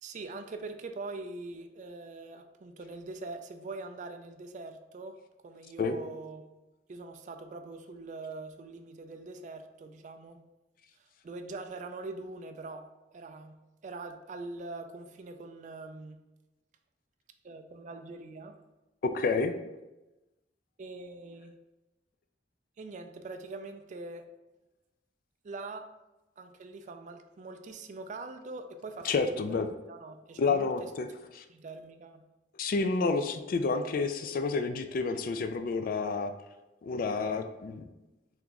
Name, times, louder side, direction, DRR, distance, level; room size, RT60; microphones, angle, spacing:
voice 1, 0.0-5.2 5.4-6.4 6.9-10.4 11.2-12.9 13.1-13.6 13.8-16.2 17.4-18.5 20.8-21.5 22.8-24.2 25.4-25.9 26.4-30.9 31.5-32.2, right 3 dB, 40° right, 7 dB, 0.3 m, -43 dB
voice 2, 19.0-19.5 29.0-29.7 30.4-31.1 31.3-31.4 32.6-36.3 36.8-37.9, left 4 dB, 50° left, 8 dB, 0.3 m, -29 dB
3.6 x 3.0 x 3.5 m, 1.0 s
head